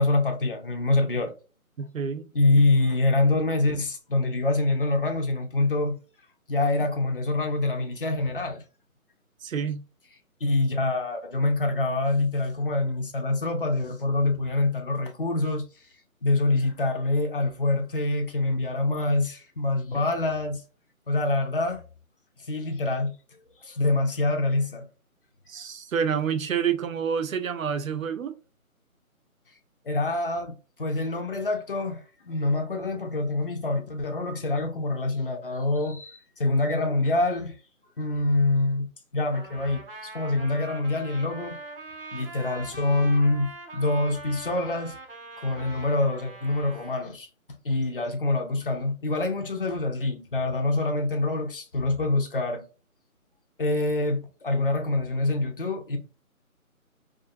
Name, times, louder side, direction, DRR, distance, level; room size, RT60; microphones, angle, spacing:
voice 1, 0.0-1.3 2.3-6.0 6.5-8.6 10.4-15.6 16.2-20.6 21.1-21.8 22.5-23.1 23.6-24.9 29.9-30.5 30.8-37.5 38.0-38.9 39.1-41.6 42.1-44.9 45.4-47.3 47.6-52.6 53.6-56.0, left 2 dB, 40° left, 0.4 m, -25 dB
voice 2, 1.8-2.3 9.4-9.8 25.5-28.4, right 7 dB, 70° right, 0.5 m, -28 dB
Trumpet, 39.3-47.0, right 2 dB, 40° right, 0.8 m, -42 dB
2.5 x 2.5 x 2.5 m
figure-of-eight pair, 155°, 43 cm